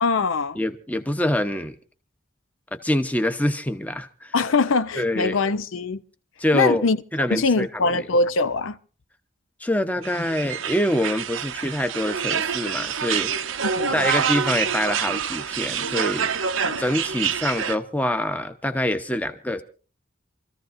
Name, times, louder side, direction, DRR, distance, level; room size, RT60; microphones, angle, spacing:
voice 1, 0.0-0.6 4.3-6.0 6.5-7.0 7.3-8.8 13.6-14.1 16.6-16.8, left 3 dB, 85° left, 0.6 m, -22 dB
voice 2, 0.5-1.8 2.7-4.3 5.0-5.4 6.4-8.1 9.6-13.3 13.9-16.3 16.8-19.6, left 1 dB, 10° left, 0.8 m, -25 dB
sound 1, 10.0-17.8, right 7 dB, 90° right, 0.7 m, -26 dB
27.5 x 14.5 x 2.6 m
head